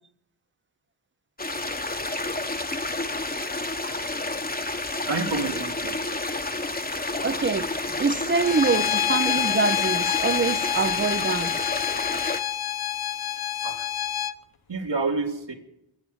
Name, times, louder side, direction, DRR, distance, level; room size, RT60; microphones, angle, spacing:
sound 1, 1.4-12.4, left 2 dB, 20° left, 1.0 m, -30 dB
voice 1, 5.0-6.1 13.6-13.9 14.7-15.5, right 3 dB, 60° right, 2.0 m, -29 dB
voice 2, 7.2-11.6, right 4 dB, 25° right, 0.6 m, -25 dB
Bowed string instrument, 8.4-14.3, left 11 dB, 50° left, 0.5 m, -27 dB
22.5 x 8.5 x 6.3 m
cardioid pair, 45°, 47 cm